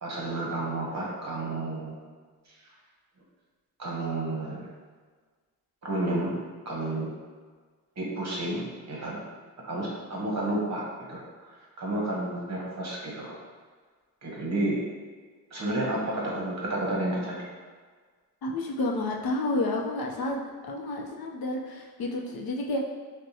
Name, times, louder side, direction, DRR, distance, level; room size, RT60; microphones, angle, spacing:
voice 1, 0.0-2.0 3.8-4.7 5.8-6.3 6.6-7.1 8.0-9.2 9.6-11.2 11.8-13.4 14.2-14.8 15.5-17.5, right 1 dB, 45° right, -3 dB, 1.0 m, -31 dB
voice 2, 18.4-20.4 20.7-22.8, left 2 dB, 65° left, 0 dB, 0.6 m, -30 dB
6.2 x 2.2 x 2.7 m, 1.5 s
wide cardioid pair, 150°, 38 cm